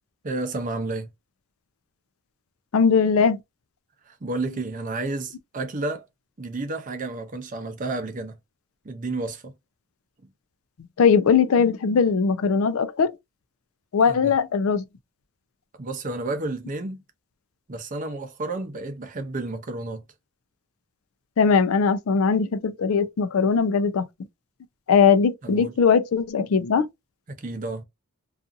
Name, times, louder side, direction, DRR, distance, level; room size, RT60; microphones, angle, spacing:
voice 1, 0.2-1.1 4.1-6.1 6.4-8.4 8.8-9.5 14.0-14.3 15.8-17.0 17.7-20.0 25.4-25.7 27.3-27.8, right 2 dB, 35° right, 0.6 m, -31 dB
voice 2, 2.7-3.4 11.0-13.1 13.9-14.8 21.4-24.1 24.9-26.9, left 5 dB, 70° left, 0.4 m, -20 dB
2.6 x 2.4 x 2.4 m
head